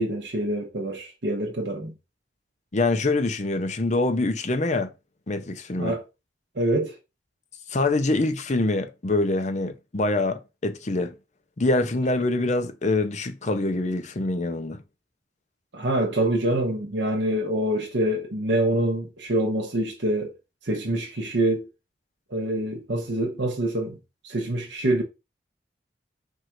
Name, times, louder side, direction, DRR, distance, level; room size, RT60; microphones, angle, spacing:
voice 1, 0.0-1.9 5.8-6.0 6.5-7.0 15.7-20.4 20.6-21.7 22.3-24.0 24.2-25.0, right 1 dB, 85° right, 0.9 m, -25 dB
voice 2, 2.7-4.9 5.3-5.9 7.7-11.1 11.6-14.8, left 2 dB, 40° left, 0.7 m, -25 dB
4.6 x 2.5 x 4.4 m
head